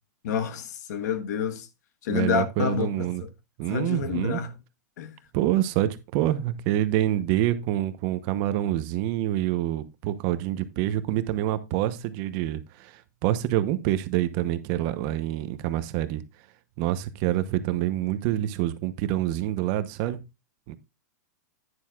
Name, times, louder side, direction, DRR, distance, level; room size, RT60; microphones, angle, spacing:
voice 1, 0.2-1.7 2.0-3.3 3.7-4.6 5.0-5.2, left 7 dB, 65° left, 1.3 m, -29 dB
voice 2, 2.1-3.2 3.6-4.4 5.3-16.2 16.8-20.2 20.7-20.8, right 13 dB, 40° right, 0.9 m, -26 dB
10.5 x 9.7 x 2.4 m
hypercardioid pair, 145°, 10 cm